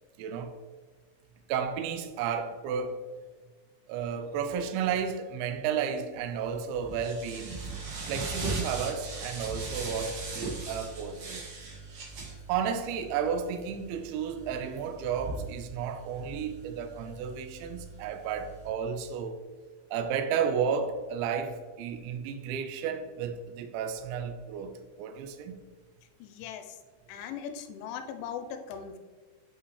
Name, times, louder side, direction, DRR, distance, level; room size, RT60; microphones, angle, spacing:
voice 1, 0.2-0.6 1.5-3.0 3.9-7.6 8.1-11.5 12.5-19.4 19.9-24.7 25.0-25.5, right 7 dB, 80° right, 2.7 m, -32 dB
sound 1, 6.3-18.7, right 3 dB, 65° right, 1.8 m, -40 dB
voice 2, 26.2-26.8 27.1-29.0, left 7 dB, 85° left, 3.0 m, -39 dB
8.6 x 5.8 x 3.1 m
omnidirectional pair, 5.6 m